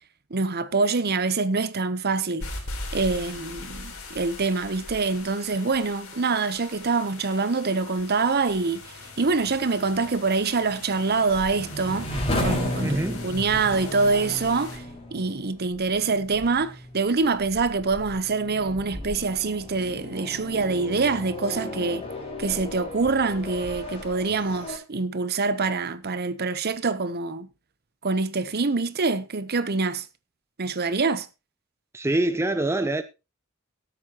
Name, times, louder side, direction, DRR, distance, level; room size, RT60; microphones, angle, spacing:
voice 1, 0.3-2.5 2.9-8.8 9.2-12.1 12.4-14.8 15.1-22.0 22.4-27.5 28.0-30.1 30.6-31.3, right 4 dB, 50° right, 0.9 m, -25 dB
sound 1, 2.4-14.8, left 3 dB, 85° left, 3.6 m, -41 dB
sound 2, 7.7-24.8, left 1 dB, 30° left, 4.8 m, -35 dB
voice 2, 12.8-13.2 31.9-33.0, right 2 dB, 10° right, 0.5 m, -25 dB
17.5 x 8.6 x 2.9 m
head